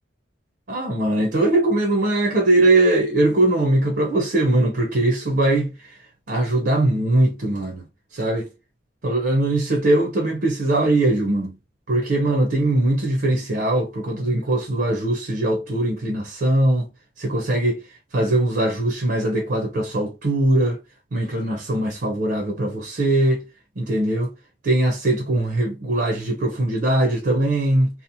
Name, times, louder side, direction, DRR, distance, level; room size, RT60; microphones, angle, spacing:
voice 1, 0.7-5.7 6.3-7.8 8.1-8.5 9.0-11.5 11.9-16.9 17.2-17.8 18.1-20.8 21.1-23.4 23.8-24.3 24.6-27.9, right 1 dB, 60° right, 0.6 m, -21 dB
2.8 x 2.0 x 2.6 m
head